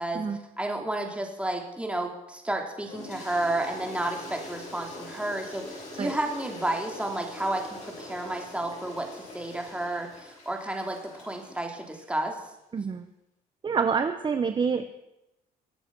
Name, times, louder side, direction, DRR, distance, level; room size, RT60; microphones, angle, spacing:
voice 1, 0.6-12.4, right 1 dB, 5° right, 2 dB, 2.9 m, -31 dB
Toilet flush, 2.8-12.2, left 2 dB, 45° left, 6.6 m, -43 dB
voice 2, 12.7-13.1 13.6-14.9, right 6 dB, 30° right, 9 dB, 0.9 m, -27 dB
22.5 x 8.1 x 6.1 m, 0.90 s
cardioid pair, 110°, 17 cm